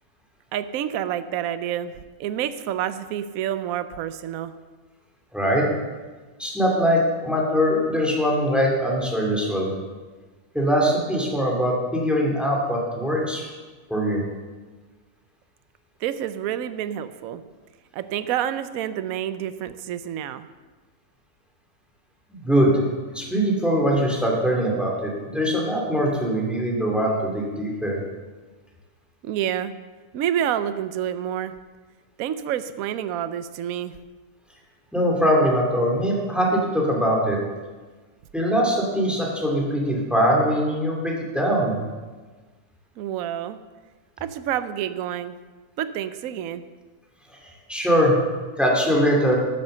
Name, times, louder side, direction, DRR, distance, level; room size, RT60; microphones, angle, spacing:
voice 1, 0.5-1.9 2.2-4.5 16.0-17.4 17.9-20.5 29.2-29.7 30.1-31.5 32.2-34.0 43.0-43.6 44.2-45.4 45.8-46.6, right 10 dB, 75° right, 12 dB, 1.0 m, -28 dB
voice 2, 5.3-5.7 6.4-9.7 10.5-13.5 13.9-14.2 22.3-22.8 23.1-28.0 34.9-37.4 38.3-41.8 47.7-48.2 48.6-49.4, equal, ahead, -2 dB, 2.8 m, -22 dB
13.0 x 7.7 x 6.8 m, 1.3 s
omnidirectional pair, 1.5 m